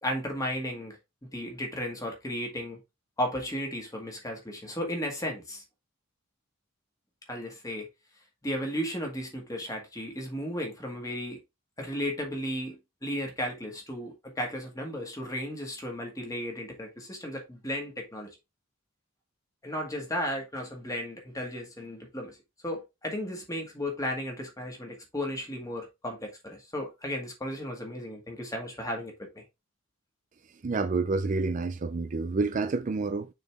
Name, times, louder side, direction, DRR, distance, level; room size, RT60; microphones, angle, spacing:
voice 1, 0.0-1.0 1.3-2.8 3.2-5.6 7.3-7.9 8.4-11.4 11.8-18.3 19.6-22.4 22.6-29.4, equal, 15° left, 1.9 m, -34 dB
voice 2, 30.6-33.3, right 3 dB, 35° right, 0.4 m, -28 dB
6.6 x 4.0 x 3.6 m
head